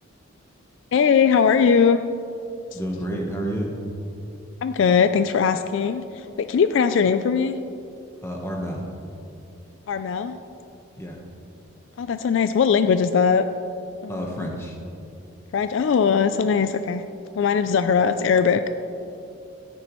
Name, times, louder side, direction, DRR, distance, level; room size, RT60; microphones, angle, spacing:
voice 1, 0.9-2.0 2.7-2.8 4.6-7.6 9.9-10.4 12.0-13.4 14.0-14.5 15.5-17.0 17.4-18.6, left 6 dB, 60° left, 10 dB, 0.3 m, -20 dB
voice 2, 2.7-3.8 8.2-8.9 11.0-11.2 14.1-14.8, equal, 10° left, 0 dB, 1.1 m, -30 dB
14.0 x 9.7 x 3.1 m, 2.7 s
head